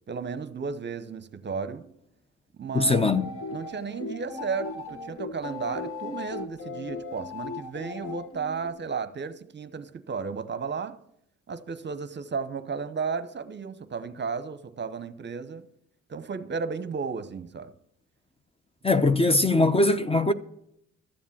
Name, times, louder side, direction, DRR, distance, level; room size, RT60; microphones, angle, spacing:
voice 1, 0.1-1.9 2.5-3.1 3.5-11.0 11.5-15.7 16.1-17.7, right 5 dB, 35° right, 0.8 m, -34 dB
voice 2, 2.7-3.2 18.8-20.3, left 2 dB, 20° left, 0.7 m, -21 dB
sound 1, 3.1-8.7, left 4 dB, 45° left, 1.4 m, -37 dB
13.0 x 7.2 x 7.2 m
cardioid pair, 90°, 30 cm